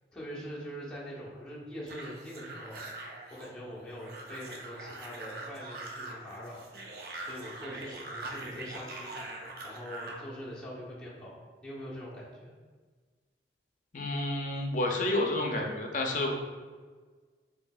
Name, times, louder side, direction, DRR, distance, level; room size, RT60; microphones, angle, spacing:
voice 1, 0.0-2.9 3.3-6.8 7.2-9.2 9.6-12.5, equal, 5° left, -8 dB, 0.8 m, -43 dB
sound 1, 1.9-10.3, right 2 dB, 55° right, 0.5 m, -43 dB
voice 2, 13.9-16.3, left 2 dB, 45° left, 1 dB, 0.5 m, -30 dB
4.9 x 2.7 x 2.3 m, 1.5 s
head